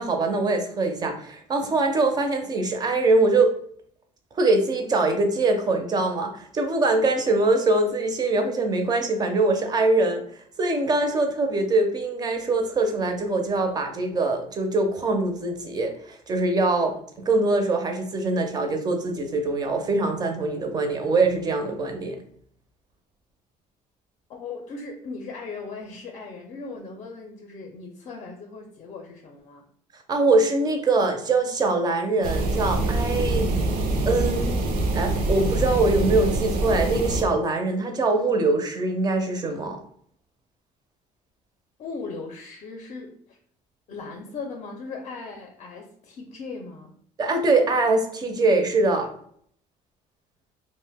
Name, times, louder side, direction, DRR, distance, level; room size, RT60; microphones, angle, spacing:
voice 1, 0.0-3.5 4.3-10.2 10.6-22.2 30.1-33.5 34.0-34.6 34.9-39.8 47.2-49.1, right 2 dB, 30° right, 5 dB, 0.5 m, -23 dB
voice 2, 24.3-29.6 41.8-43.4 43.9-47.0, left 4 dB, 45° left, 2 dB, 0.5 m, -38 dB
sound 1, 32.2-37.2, right 2 dB, 75° right, 0.5 m, -25 dB
2.4 x 2.1 x 3.4 m, 0.62 s
cardioid pair, 140°, 14 cm